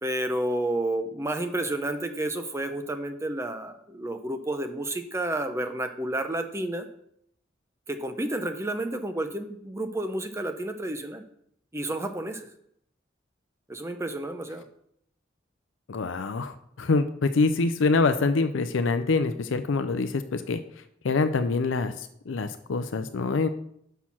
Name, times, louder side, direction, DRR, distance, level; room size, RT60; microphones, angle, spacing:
voice 1, 0.0-6.9 7.9-11.2 11.7-12.5 13.7-14.7, right 1 dB, 15° right, 7 dB, 0.6 m, -30 dB
voice 2, 15.9-20.6 21.0-23.5, left 3 dB, 80° left, 10 dB, 0.5 m, -25 dB
6.4 x 5.7 x 6.0 m, 0.71 s
head